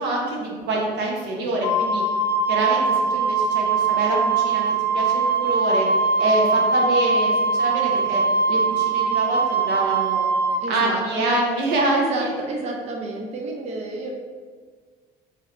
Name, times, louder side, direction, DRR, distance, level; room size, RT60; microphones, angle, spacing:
voice 1, 0.0-2.0 2.5-5.9 6.2-8.2 8.5-10.2 10.7-12.4, right 2 dB, 90° right, -2 dB, 0.7 m, -25 dB
Wind instrument woodwind instrument, 1.6-10.6, right 4 dB, 80° left, 0.6 m, -21 dB
voice 2, 10.6-11.3 11.9-14.1, right 3 dB, 40° right, 0 dB, 0.4 m, -30 dB
3.2 x 3.1 x 2.4 m, 1.6 s
cardioid pair, 110°, 17 cm